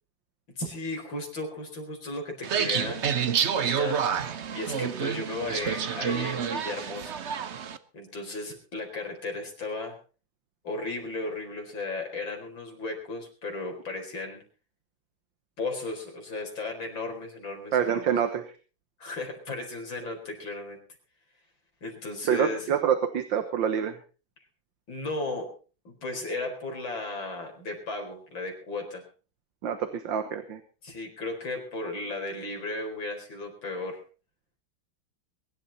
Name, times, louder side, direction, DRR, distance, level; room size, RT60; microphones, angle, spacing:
voice 1, 0.6-3.1 3.5-4.1 4.5-7.2 7.9-10.0 10.6-14.4 15.6-18.1 19.0-20.8 21.8-22.7 24.9-25.6 25.8-29.1 30.8-34.0, left 2 dB, 85° left, 2 dB, 5.2 m, -35 dB
sound 1, 2.4-7.8, right 7 dB, 45° right, 1.0 m, -29 dB
voice 2, 17.7-18.5 22.3-24.0 29.6-30.6, right 8 dB, 75° right, 9 dB, 2.0 m, -26 dB
22.5 x 11.5 x 4.2 m, 0.36 s
omnidirectional pair, 2.1 m